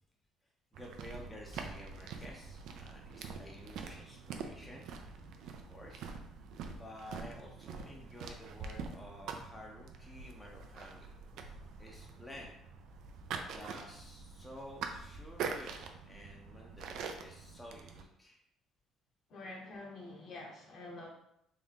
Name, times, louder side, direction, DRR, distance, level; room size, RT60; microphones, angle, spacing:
voice 1, 0.7-4.9 5.5-6.1 6.7-11.1 11.5-12.5 13.3-18.4, left 1 dB, 10° left, -1 dB, 0.6 m, -52 dB
sound 1, 0.7-18.1, right 5 dB, 70° right, 0.4 m, -45 dB
voice 2, 19.3-21.1, left 2 dB, 55° left, 0 dB, 1.0 m, -47 dB
3.6 x 2.6 x 3.5 m, 0.77 s
cardioid pair, 110°, 0 cm